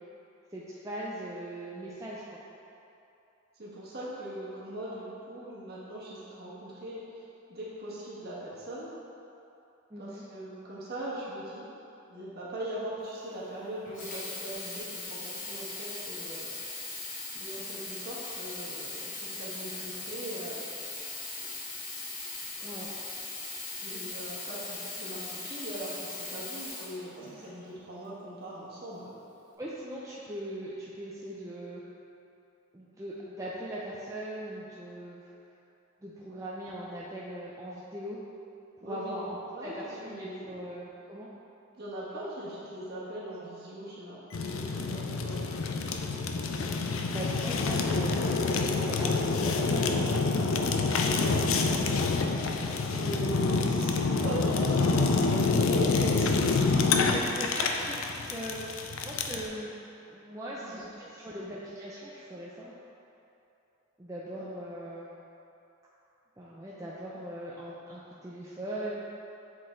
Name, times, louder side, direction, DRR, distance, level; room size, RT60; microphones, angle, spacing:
voice 1, 0.5-2.4 9.9-10.2 22.6-23.0 29.6-31.8 32.7-35.3 36.0-38.2 38.8-41.3 47.0-50.1 51.3-51.4 57.1-59.7 60.1-62.8 64.0-65.1 66.4-69.0, equal, 15° right, -7 dB, 0.5 m, -40 dB
voice 2, 3.5-7.2 7.5-8.9 10.0-11.7 12.1-16.5 17.3-20.6 22.6-22.7 23.8-29.1 36.3-36.4 38.8-39.2 39.5-40.6 41.8-45.4 51.1-51.3 52.5-57.1 57.6-57.7 60.4-60.8 61.1-61.4 64.3-64.4, right 1 dB, 50° right, -7 dB, 1.4 m, -40 dB
Sink (filling or washing), 13.9-27.6 28.4-28.5, left 3 dB, 40° left, 1.1 m, -39 dB
Fire, 44.3-59.5, left 4 dB, 70° left, 0.4 m, -27 dB
7.6 x 3.9 x 3.8 m, 2.8 s
head